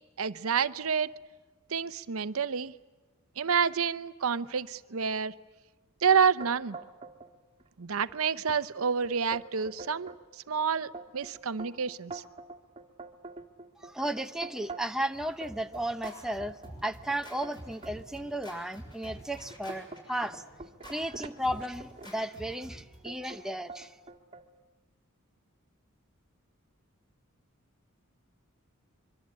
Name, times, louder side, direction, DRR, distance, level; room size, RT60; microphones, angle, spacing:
voice 1, 0.2-1.1 1.7-2.7 3.4-5.3 6.0-6.8 7.8-10.1 10.5-12.2, right 6 dB, 75° right, 14 dB, 0.7 m, -28 dB
sound 1, 6.4-7.3 7.6-8.1 8.5-8.6 9.0-10.2 10.7-15.0 15.4-18.0 18.6-18.7 19.2-22.3 23.1-23.4 23.7-24.5, right 3 dB, 25° right, 1.8 m, -45 dB
voice 2, 13.8-16.6 16.8-20.4 20.9-23.9, right 1 dB, 5° right, 6 dB, 0.8 m, -34 dB
Scratching (performance technique), 14.9-23.3, equal, 20° left, 6.8 m, -49 dB
24.5 x 23.5 x 8.7 m, 1.3 s
head